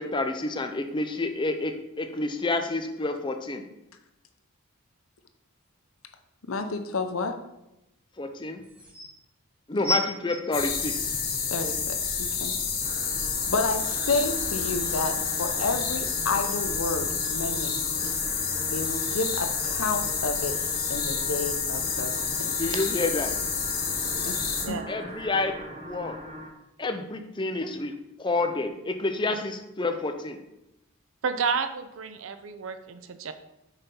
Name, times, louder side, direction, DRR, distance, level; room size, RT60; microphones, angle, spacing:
voice 1, 0.0-3.6 8.2-8.6 9.7-11.2 22.5-23.3 24.9-26.2 26.8-27.9 28.2-30.4, left 2 dB, 20° left, 6 dB, 0.6 m, -29 dB
voice 2, 6.5-7.4 11.5-12.5 13.5-17.7 18.0-18.1 18.7-20.6 20.9-22.2 22.4-22.6 24.1-24.8, left 3 dB, 70° left, 7 dB, 0.7 m, -30 dB
sound 1, 8.6-9.1 9.8-11.4 12.1-12.2, equal, 5° right, 1.3 m, -31 dB
sound 2, 10.5-24.7, left 6 dB, 45° left, 1.1 m, -29 dB
sound 3, 12.8-26.5, right 1 dB, 25° right, 0.8 m, -41 dB
voice 3, 31.2-33.3, right 5 dB, 65° right, 9 dB, 0.5 m, -30 dB
5.7 x 4.2 x 5.3 m, 0.89 s
head